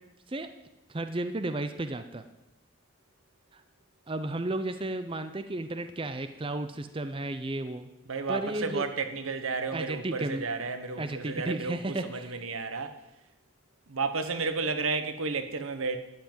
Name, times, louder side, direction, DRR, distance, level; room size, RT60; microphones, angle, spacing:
voice 1, 0.9-2.2 3.5-3.6 4.1-7.9 8.3-8.8 9.7-10.5 11.0-12.4, right 2 dB, 25° right, 0.6 m, -33 dB
voice 2, 8.1-13.0 13.9-16.0, right 4 dB, 85° right, 1.1 m, -32 dB
12.5 x 5.9 x 8.9 m
head